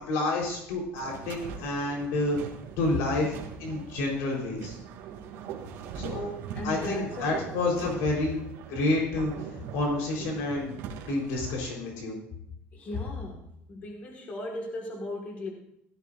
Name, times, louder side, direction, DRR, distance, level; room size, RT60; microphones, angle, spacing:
voice 1, 0.1-2.4 2.8-4.7 5.9-6.4 6.6-8.4 8.7-9.3 9.7-10.8 11.0-12.2, left 2 dB, 65° left, -1 dB, 3.9 m, -29 dB
sound 1, 0.9-11.5, right 7 dB, 55° right, 2.5 m, -42 dB
voice 2, 6.5-7.4 12.7-13.4 13.7-15.5, left 2 dB, 30° left, 1 dB, 1.7 m, -36 dB
16.5 x 14.0 x 2.5 m, 0.75 s
cardioid pair, 180°, 5 cm